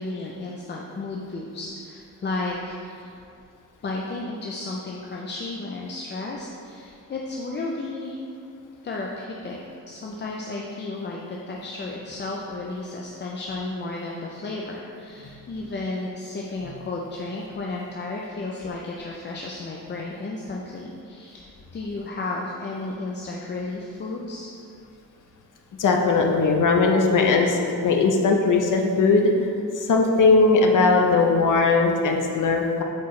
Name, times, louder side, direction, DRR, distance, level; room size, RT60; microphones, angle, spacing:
voice 1, 0.0-3.1 3.8-8.2 8.8-9.6 9.9-24.5, left 2 dB, 35° left, -2 dB, 0.4 m, -33 dB
voice 2, 25.8-29.3 29.8-32.8, left 3 dB, 65° left, 2 dB, 0.8 m, -19 dB
8.2 x 4.6 x 3.1 m, 2.5 s
wide cardioid pair, 160°, 34 cm